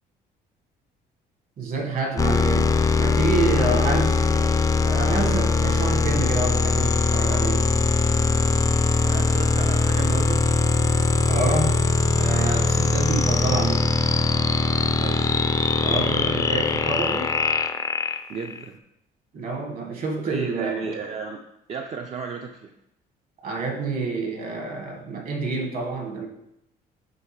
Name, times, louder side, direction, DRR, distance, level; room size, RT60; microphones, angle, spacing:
voice 1, 1.6-4.5 4.8-7.7 11.3-11.8 12.1-13.9 15.8-17.3 19.3-20.9 23.4-26.3, right 3 dB, 55° right, 2 dB, 1.7 m, -28 dB
sound 1, 2.2-18.6, left 3 dB, 20° left, 0.4 m, -21 dB
voice 2, 3.6-4.3 9.0-10.5 12.9-13.1 15.0-15.4 18.3-18.8 20.2-21.4 21.7-22.7, right 5 dB, 40° right, 3 dB, 0.5 m, -34 dB
9.2 x 3.5 x 3.2 m, 0.84 s
cardioid pair, 110°, 17 cm